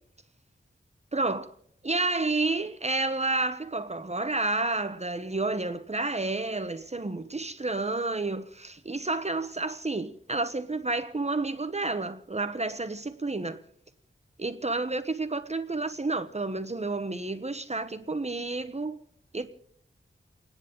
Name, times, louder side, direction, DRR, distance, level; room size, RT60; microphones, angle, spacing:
voice 1, 1.1-1.5 1.8-13.6 14.4-19.0 19.3-19.5, right 3 dB, 30° right, 0.9 m, -30 dB
30.0 x 10.0 x 3.8 m
wide cardioid pair, 70°, 21 cm